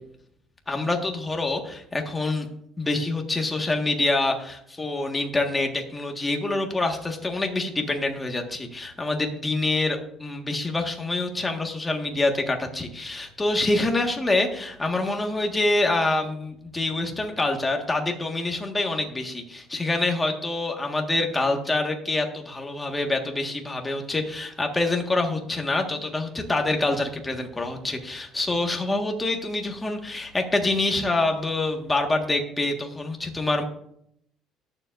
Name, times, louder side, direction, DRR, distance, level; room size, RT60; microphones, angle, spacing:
voice 1, 0.7-2.5 2.8-33.6, left 2 dB, 15° left, 3 dB, 1.6 m, -26 dB
21.0 x 7.2 x 2.6 m, 0.72 s
cardioid pair, 125°, 0 cm